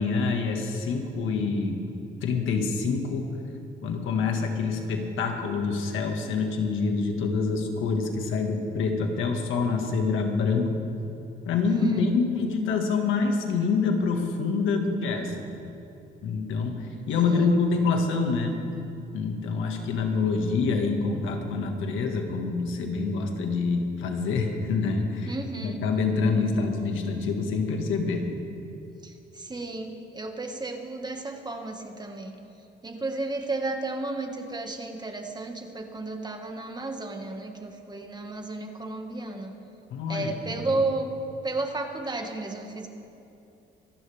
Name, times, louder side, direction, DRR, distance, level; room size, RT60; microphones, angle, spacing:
voice 1, 0.0-1.8 2.2-3.3 3.8-10.8 11.5-15.5 16.2-18.6 19.1-25.3 25.6-28.2 39.9-40.6, left 4 dB, 85° left, 3 dB, 1.8 m, -26 dB
voice 2, 11.7-12.2 17.2-17.5 25.2-25.8 29.0-32.3 32.8-39.5 40.1-41.1 41.4-42.9, right 2 dB, 20° right, 4 dB, 1.7 m, -33 dB
26.0 x 11.5 x 3.5 m, 2.8 s
cardioid pair, 90°, 20 cm